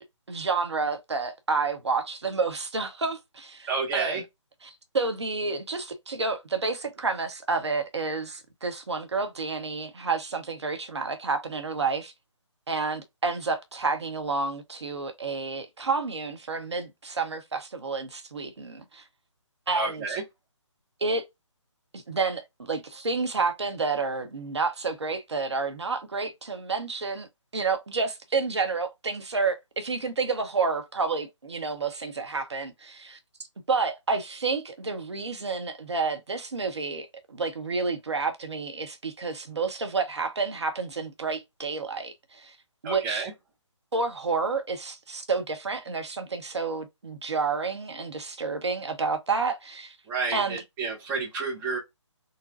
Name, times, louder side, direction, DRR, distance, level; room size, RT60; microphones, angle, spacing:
voice 1, 0.3-4.2 4.6-12.1 12.7-19.0 19.7-20.2 21.0-21.2 21.9-27.3 27.5-33.2 33.7-42.6 42.8-43.3 43.9-50.0 50.3-50.6, right 4 dB, 60° right, 0.8 m, -30 dB
voice 2, 3.7-4.2 19.7-20.2 42.8-43.3 50.1-51.8, right 4 dB, 10° right, 0.6 m, -30 dB
4.0 x 2.1 x 2.5 m
figure-of-eight pair, 145°, 16 cm